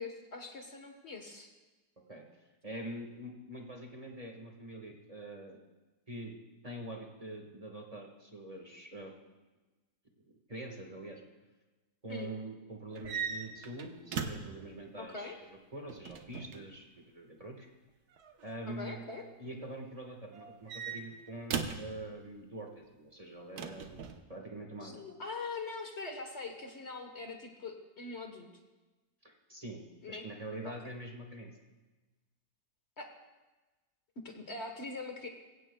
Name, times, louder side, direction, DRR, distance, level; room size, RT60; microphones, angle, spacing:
voice 1, 0.0-1.5 12.1-12.3 15.0-15.4 18.7-19.2 24.8-28.5 30.0-30.3 30.6-30.8 33.0-33.1 34.2-35.3, left 3 dB, 45° left, 4 dB, 1.5 m, -42 dB
voice 2, 2.6-5.6 6.1-6.3 6.6-9.1 10.5-11.2 12.0-17.7 18.4-19.0 19.4-24.0 24.3-25.0 29.2-31.5, right 1 dB, 25° right, 1 dB, 1.5 m, -44 dB
sound 1, 12.9-14.6 15.9-16.6 18.1-18.5 20.3-21.9 23.6-24.2, right 6 dB, 80° right, 1.5 m, -39 dB
23.0 x 16.5 x 2.3 m, 1.2 s
omnidirectional pair, 1.6 m